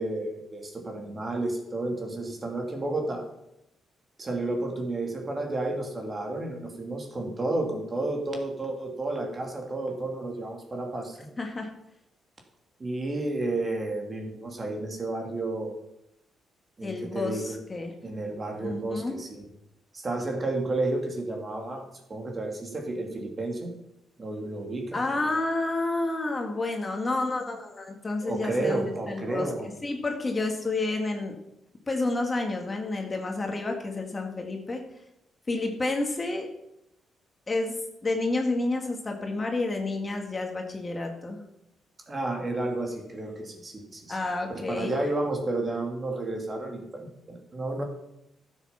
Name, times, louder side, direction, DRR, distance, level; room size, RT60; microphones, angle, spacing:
voice 1, 0.0-3.3 4.2-11.3 12.8-15.7 16.8-17.5 18.0-19.4 19.9-21.8 22.1-23.7 24.2-25.0 28.2-29.7 42.1-44.2 44.5-47.8, right 2 dB, 35° right, 2 dB, 2.8 m, -31 dB
voice 2, 11.4-11.7 16.8-17.9 18.6-19.1 24.9-31.4 31.9-34.8 35.5-36.5 37.5-37.7 38.0-41.4 44.1-45.0, left 2 dB, 25° left, 3 dB, 2.1 m, -30 dB
12.0 x 7.4 x 5.9 m, 0.84 s
cardioid pair, 85°, 0 cm